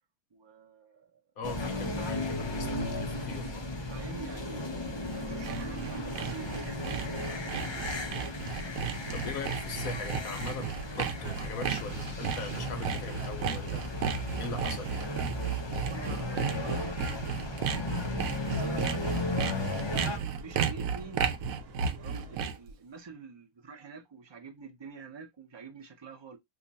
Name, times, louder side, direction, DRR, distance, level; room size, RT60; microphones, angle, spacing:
voice 1, 0.3-1.2 2.0-2.4 3.9-4.7 5.2-7.3 14.5-14.9 15.4-17.3 17.6-17.8 18.4-19.5 19.9-21.3 22.0-26.4, right 5 dB, 45° right, 0.3 m, -47 dB
voice 2, 1.4-3.7 9.1-13.9 14.4-15.0, left 3 dB, 75° left, 1.2 m, -40 dB
sound 1, 1.4-20.2, left 2 dB, 40° left, 0.4 m, -35 dB
Sawing, 4.9-22.7, right 6 dB, 75° right, 1.0 m, -34 dB
sound 2, 9.2-22.4, right 1 dB, 60° right, 1.2 m, -49 dB
2.9 x 2.3 x 3.9 m
omnidirectional pair, 1.5 m